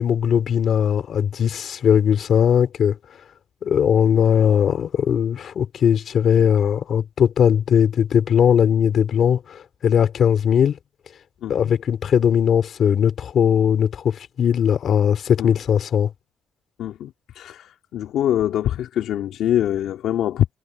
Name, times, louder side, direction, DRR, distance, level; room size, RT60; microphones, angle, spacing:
voice 1, 0.0-3.0 3.6-10.8 11.5-16.1, left 8 dB, 60° left, 3.3 m, -19 dB
voice 2, 11.4-11.7 15.4-15.5 16.8-20.5, left 11 dB, 80° left, 2.2 m, -24 dB
cardioid pair, 90°, 0 cm